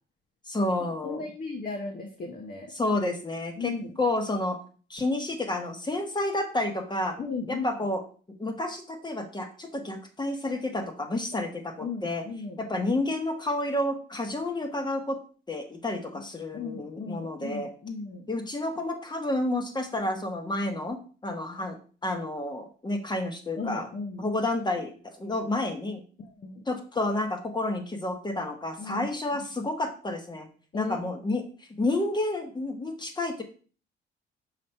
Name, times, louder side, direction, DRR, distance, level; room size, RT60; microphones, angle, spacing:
voice 1, 0.5-1.3 2.7-4.6 4.9-7.2 7.5-8.0 8.4-12.2 12.6-15.2 15.5-17.7 18.3-21.0 21.2-21.8 22.0-23.9 24.2-26.0 26.7-30.5 30.7-31.4 31.8-33.4, left 2 dB, 20° left, 5 dB, 1.3 m, -30 dB
voice 2, 1.0-2.7 3.6-3.9 7.2-7.7 11.8-12.6 16.5-18.2 23.6-24.2 26.2-26.6 28.8-29.1 30.7-31.0, left 4 dB, 45° left, 2 dB, 1.0 m, -36 dB
5.9 x 3.1 x 5.4 m, 0.40 s
cardioid pair, 90°, 20 cm